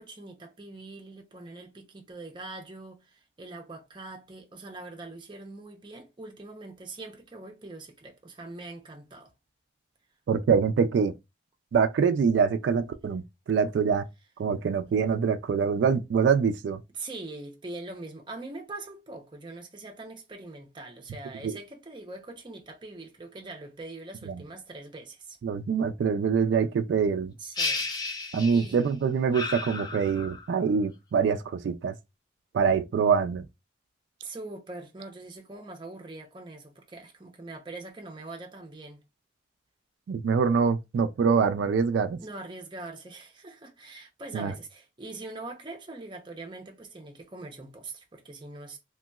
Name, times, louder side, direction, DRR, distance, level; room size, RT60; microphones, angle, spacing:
voice 1, 0.0-9.3 16.9-25.4 27.4-28.8 34.2-39.0 42.2-48.8, right 2 dB, 25° right, 0.6 m, -43 dB
voice 2, 10.3-11.1 11.7-13.2 13.5-14.0 14.4-16.8 21.4-21.6 24.3-24.4 25.4-27.3 28.3-31.9 32.5-33.5 40.1-42.2 44.3-44.5, right 6 dB, 80° right, 0.3 m, -24 dB
sound 1, 27.6-28.9 29.3-30.6, left 3 dB, 20° left, 0.5 m, -33 dB
3.0 x 2.8 x 2.3 m
head